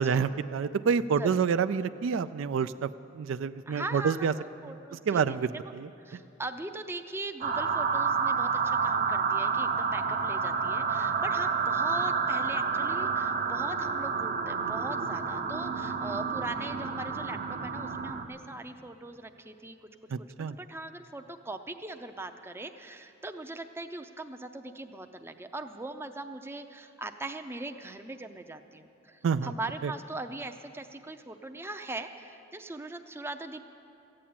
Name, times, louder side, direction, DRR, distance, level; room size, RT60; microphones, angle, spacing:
voice 1, 0.0-2.9 3.2-4.3 5.1-5.9 20.1-20.6 29.2-29.5 29.8-29.9, right 6 dB, 75° right, 13 dB, 0.3 m, -28 dB
voice 2, 3.7-5.7 6.0-19.8 20.2-33.6, right 2 dB, 10° right, 7 dB, 0.5 m, -40 dB
sound 1, 7.4-18.2, right 5 dB, 45° right, 0.8 m, -29 dB
14.5 x 8.7 x 8.6 m, 2.7 s
head